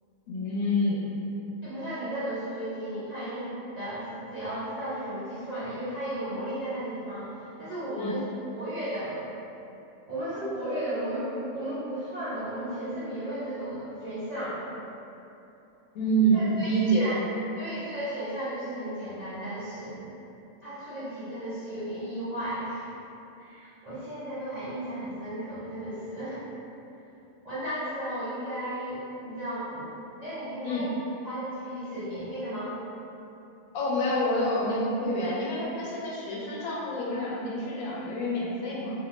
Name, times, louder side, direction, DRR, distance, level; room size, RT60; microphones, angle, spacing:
voice 1, 0.3-1.2 8.0-8.2 15.9-17.1 30.6-30.9 33.7-38.9, right 1 dB, 75° left, -5 dB, 1.0 m, -27 dB
voice 2, 1.6-8.2 8.5-9.2 10.1-14.6 16.3-17.2 17.6-20.0 20.6-22.9 23.4-26.4 27.4-30.9 31.2-32.7, right 1 dB, 50° right, -13 dB, 0.5 m, -34 dB
2.6 x 2.0 x 3.1 m, 2.9 s
omnidirectional pair, 1.5 m